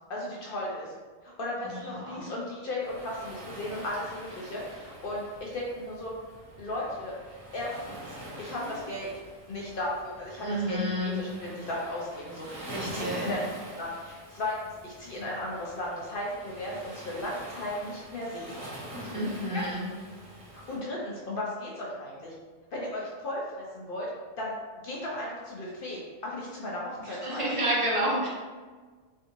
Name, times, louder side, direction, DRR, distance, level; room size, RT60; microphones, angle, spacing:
voice 1, 0.1-0.9 1.2-6.1 6.6-7.2 7.5-9.1 9.5-13.4 13.8-14.6 14.8-18.6 19.0-19.7 20.5-22.3 22.7-24.1 24.4-24.5 24.8-27.5 28.0-28.2, left 1 dB, 60° left, -4 dB, 0.6 m, -36 dB
voice 2, 1.9-2.2 10.4-11.2 12.7-13.3 19.1-19.8 27.1-28.3, equal, 35° right, -6 dB, 0.6 m, -29 dB
Waves surf, 2.8-20.8, right 1 dB, 80° right, 1.4 m, -45 dB
3.4 x 2.7 x 2.6 m, 1.4 s
omnidirectional pair, 1.3 m